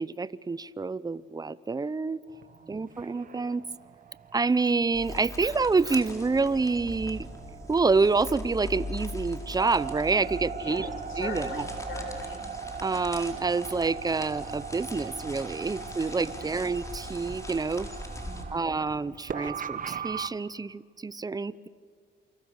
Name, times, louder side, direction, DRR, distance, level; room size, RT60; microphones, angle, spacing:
voice 1, 0.0-2.2 2.7-3.6 4.3-7.3 7.7-10.9 11.2-11.7 12.8-17.9 18.5-21.7, right 4 dB, 20° right, 18 dB, 0.7 m, -27 dB
sound 1, 2.3-20.3, right 7 dB, 45° right, 1.2 m, -40 dB
voice 2, 2.5-2.9 10.5-12.5 15.7-15.9 16.2-16.6 18.2-18.6, left 3 dB, 75° left, 2 dB, 7.6 m, -41 dB
sound 2, 4.9-18.4, left 2 dB, 15° left, 4.2 m, -41 dB
28.5 x 25.0 x 6.6 m, 2.1 s
cardioid pair, 90°, 20 cm